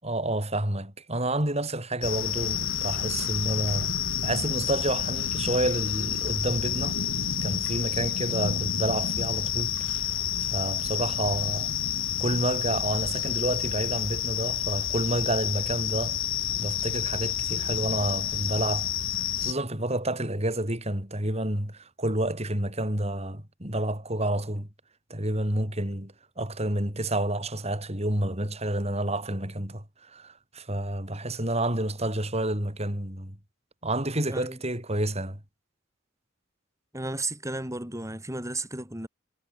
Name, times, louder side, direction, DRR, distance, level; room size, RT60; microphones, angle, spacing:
voice 1, 0.0-7.0 7.4-11.8 12.2-16.2 16.6-24.7 25.1-33.4 33.8-35.4, right 1 dB, 30° right, 6.6 m, -29 dB
sound 1, 2.0-19.5, left 9 dB, 80° left, 5.7 m, -29 dB
voice 2, 34.3-34.6 36.9-39.1, right 2 dB, 15° right, 5.8 m, -33 dB
head